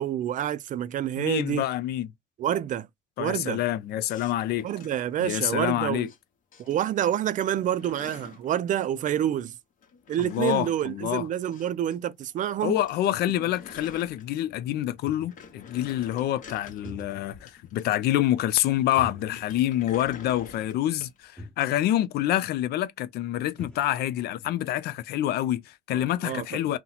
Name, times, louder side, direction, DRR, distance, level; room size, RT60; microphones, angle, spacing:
voice 1, 0.0-1.6 2.4-2.9 3.2-3.6 4.6-6.1 6.6-9.6 10.1-12.8 25.9-26.7, right 11 dB, 50° right, 0.4 m, -28 dB
voice 2, 1.2-2.1 3.2-4.7 5.2-6.1 10.2-11.3 12.6-26.8, left 13 dB, 70° left, 0.5 m, -27 dB
sound 1, 4.1-6.2 6.5-7.1 7.3-8.5 9.8-12.0 12.2-12.3 12.6-12.7 12.9-14.6 15.0-18.1 19.2-21.2, left 6 dB, 50° left, 0.9 m, -48 dB
sound 2, 14.4-15.6 16.6-17.5 17.8-17.9 18.9-19.8 20.1-20.2 21.0-21.1 21.4-21.7 23.0-23.1 23.3-23.9, left 1 dB, 5° left, 1.0 m, -45 dB
2.9 x 2.1 x 3.9 m
cardioid pair, 110°, 17 cm